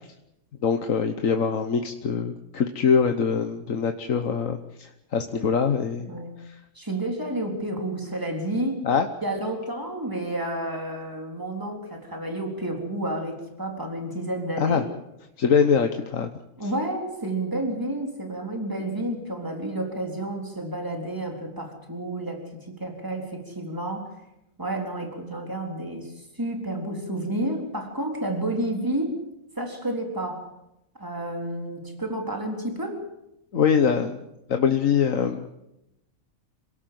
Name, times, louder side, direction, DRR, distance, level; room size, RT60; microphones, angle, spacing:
voice 1, 0.6-6.1 6.4-6.6 8.8-9.1 14.6-14.8 15.4-16.3 33.5-34.2 34.5-35.5, left 6 dB, 70° left, 6 dB, 1.5 m, -23 dB
voice 2, 6.7-8.8 9.2-14.9 16.6-24.2 24.6-29.2 29.6-30.5 31.0-33.0, right 1 dB, 15° right, 2 dB, 3.9 m, -30 dB
27.5 x 17.5 x 7.7 m, 0.87 s
omnidirectional pair, 1.4 m